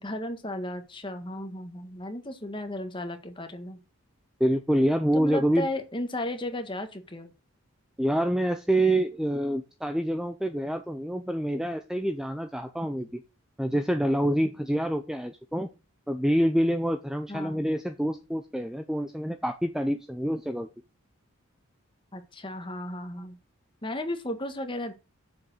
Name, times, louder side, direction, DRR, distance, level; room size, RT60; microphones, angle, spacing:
voice 1, 0.0-3.8 5.1-7.3 17.3-17.7 22.1-23.4 23.8-24.9, left 1 dB, 20° left, 6 dB, 1.6 m, -34 dB
voice 2, 4.4-5.7 8.0-13.2 13.6-15.7 16.1-20.7, right 1 dB, ahead, 8 dB, 0.6 m, -26 dB
7.9 x 7.0 x 6.4 m, 0.30 s
head